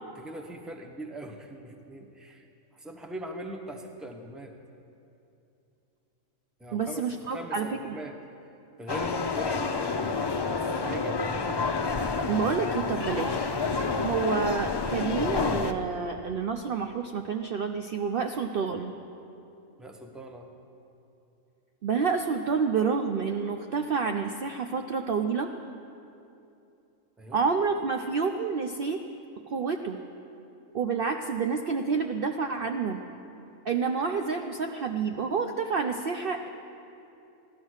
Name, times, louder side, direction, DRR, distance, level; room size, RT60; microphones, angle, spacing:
voice 1, 0.2-2.5 2.7-4.5 6.6-8.2 8.8-11.2 12.9-13.0 19.8-20.5 27.2-27.4, right 1 dB, ahead, 3 dB, 0.9 m, -41 dB
voice 2, 6.7-8.0 12.3-13.6 14.0-18.9 21.8-25.5 27.3-29.0 29.5-30.0 30.7-33.0 33.6-36.5, right 5 dB, 55° right, 5 dB, 0.7 m, -29 dB
sound 1, 8.9-15.7, left 4 dB, 45° left, 0.3 m, -29 dB
15.5 x 12.0 x 6.4 m, 2.7 s
omnidirectional pair, 1.4 m